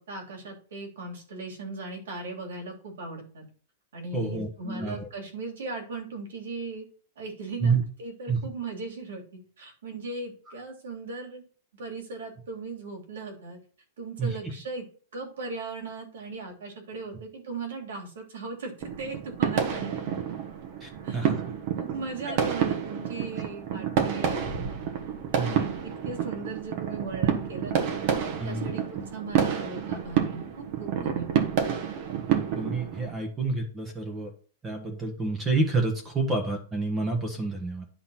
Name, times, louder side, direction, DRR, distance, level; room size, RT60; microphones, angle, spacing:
voice 1, 0.0-3.5 3.9-6.9 7.2-11.4 11.7-13.6 14.0-14.9 15.1-20.2 21.0-21.3 21.8-24.7 25.3-27.9 28.4-31.6, right 3 dB, 90° right, 3 dB, 3.4 m, -38 dB
voice 2, 4.1-5.1 7.6-7.8 8.3-8.4 10.5-10.6 14.2-14.4 20.8-21.4 22.2-22.4 25.3-25.6 28.4-28.7 32.3-34.3 34.6-37.9, right 3 dB, 15° right, 4 dB, 1.3 m, -29 dB
sound 1, 18.8-33.1, right 8 dB, 40° right, 1.3 m, -29 dB
10.5 x 3.9 x 5.9 m, 0.42 s
supercardioid pair, 170°, 0 cm